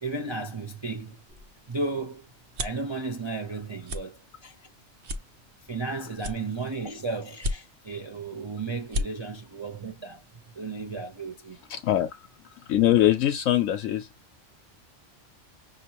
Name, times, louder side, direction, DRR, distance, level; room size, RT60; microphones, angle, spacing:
voice 1, 0.0-1.2 1.7-2.3 2.6-4.6 5.6-10.2 10.6-11.6, right 3 dB, 30° right, 0.5 m, -34 dB
sound 1, 1.3-2.9 3.4-3.6 3.8-4.0 4.5-4.6 5.0-5.8 6.2-6.9 7.3-8.0 8.4-8.5 8.8-9.1, left 1 dB, 50° right, 1.0 m, -32 dB
voice 2, 11.7-12.3 12.7-14.1, left 12 dB, 90° left, 1.0 m, -22 dB
6.2 x 2.8 x 2.9 m
omnidirectional pair, 1.3 m